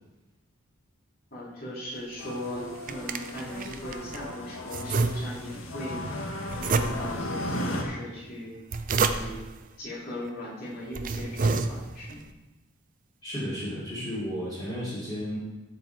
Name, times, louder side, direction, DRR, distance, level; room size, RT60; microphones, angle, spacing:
voice 1, 1.3-6.2 6.6-8.5 9.0-9.4 9.8-12.2, left 1 dB, 45° left, -5 dB, 3.1 m, -38 dB
sound 1, 2.2-7.8, left 1 dB, 75° left, 1.4 m, -36 dB
sound 2, 2.5-4.2 4.7-5.6 6.5-7.3 8.4-9.5 10.3-10.4 10.8-12.2, right 4 dB, 40° right, 0.5 m, -29 dB
voice 2, 13.2-15.4, equal, 20° left, -11 dB, 2.7 m, -33 dB
13.5 x 5.0 x 4.6 m, 1.1 s
head